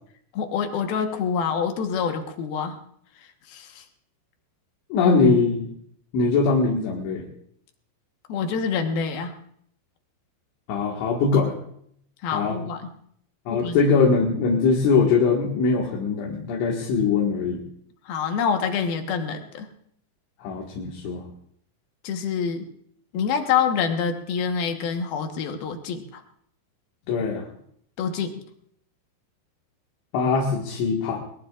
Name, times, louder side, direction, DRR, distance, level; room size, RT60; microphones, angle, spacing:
voice 1, 0.3-2.8 3.5-3.8 8.3-9.3 12.2-12.9 13.5-13.8 18.1-19.7 22.0-22.7 23.1-26.2 28.0-28.3, left 6 dB, 65° left, 4 dB, 2.8 m, -26 dB
voice 2, 4.9-5.7 6.1-7.3 10.7-11.5 12.3-12.6 13.5-17.6 20.4-21.3 27.1-27.5 30.1-31.2, left 4 dB, 80° left, -2 dB, 4.2 m, -21 dB
22.5 x 21.5 x 2.5 m, 0.67 s
omnidirectional pair, 5.3 m